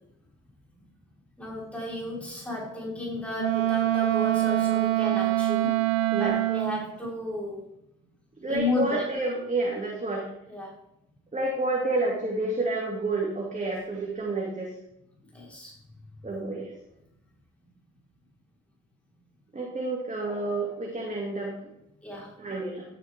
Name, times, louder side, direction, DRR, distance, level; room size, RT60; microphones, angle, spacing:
voice 1, 1.4-5.8 6.2-7.7 8.4-9.0 10.5-10.7 13.6-13.7 15.3-15.7 22.0-22.3, left 2 dB, 5° left, -4 dB, 4.3 m, -33 dB
Wind instrument woodwind instrument, 3.4-6.8, right 16 dB, 90° right, 0.5 m, -24 dB
voice 2, 8.4-10.3 11.3-14.7 16.2-16.7 19.5-21.5 22.4-22.8, right 2 dB, 20° right, -2 dB, 2.6 m, -29 dB
13.0 x 6.8 x 3.6 m, 0.81 s
hypercardioid pair, 45°, 37 cm